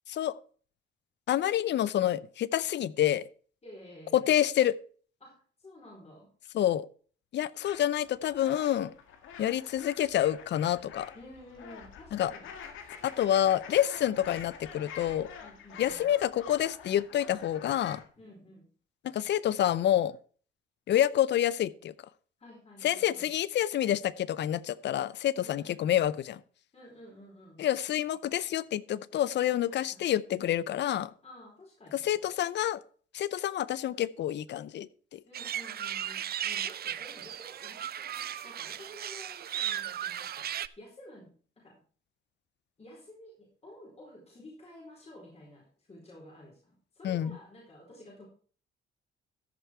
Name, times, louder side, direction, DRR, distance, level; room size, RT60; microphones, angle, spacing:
voice 1, 1.3-3.3 4.1-4.7 6.5-6.9 7.3-8.9 9.4-11.1 12.1-12.3 13.0-15.3 15.8-18.0 19.1-20.1 20.9-21.9 22.8-26.4 27.6-31.1 32.0-32.8 33.1-35.2 47.0-47.4, left 11 dB, 60° left, 0.6 m, -28 dB
voice 2, 3.6-4.3 5.2-6.3 11.1-12.5 15.4-16.1 18.2-18.7 22.4-23.3 25.4-26.0 26.7-27.6 29.7-30.0 31.2-32.1 35.3-41.8 42.8-48.3, left 1 dB, 30° left, 4.4 m, -52 dB
sound 1, 7.6-18.1, left 7 dB, 80° left, 2.0 m, -47 dB
sound 2, 35.3-40.7, right 10 dB, 50° right, 0.5 m, -36 dB
14.0 x 6.6 x 4.5 m
cardioid pair, 90°, 20 cm